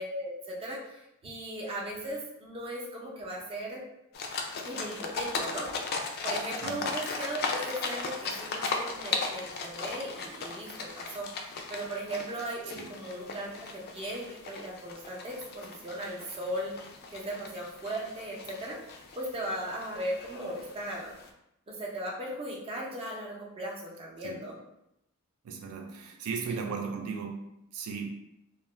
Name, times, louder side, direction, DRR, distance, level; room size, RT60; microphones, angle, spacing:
voice 1, 0.0-3.8 4.6-5.7 6.2-16.7 17.1-18.8 19.2-21.2 21.7-24.6 26.5-26.6, right 1 dB, 25° right, -4 dB, 0.6 m, -37 dB
sound 1, 4.1-21.3, left 4 dB, 45° left, 0.3 m, -37 dB
voice 2, 6.6-7.0 12.8-12.9 24.2-24.4 25.4-28.1, right 5 dB, 90° right, 2 dB, 0.4 m, -37 dB
2.3 x 2.1 x 3.0 m, 0.83 s
head